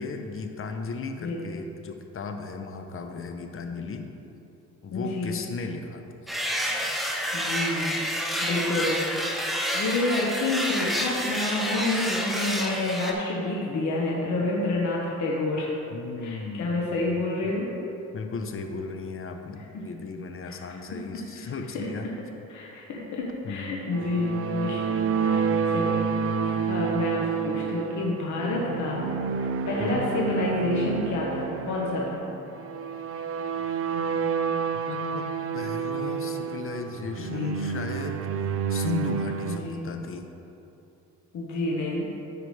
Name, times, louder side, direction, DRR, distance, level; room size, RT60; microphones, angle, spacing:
voice 1, 0.0-4.1 4.8-6.1 14.7-14.8 15.9-17.5 18.1-22.1 23.4-24.1 29.8-30.1 34.6-35.2 35.5-38.3 38.7-40.3, left 4 dB, 45° left, 5 dB, 0.8 m, -36 dB
voice 2, 4.9-5.4 7.3-8.0 8.4-15.7 16.2-17.7 19.7-19.8 20.4-20.6 21.1-22.1 22.5-24.9 25.2-26.1 26.3-32.2 37.2-37.5 39.4-39.8 41.3-42.1, left 2 dB, 75° left, -4 dB, 1.3 m, -29 dB
sound 1, 6.3-13.1, equal, ahead, 0.9 m, -29 dB
sound 2, 23.9-39.6, right 6 dB, 50° right, 0.5 m, -29 dB
13.5 x 4.9 x 3.3 m, 2.9 s
cardioid pair, 90°, 30 cm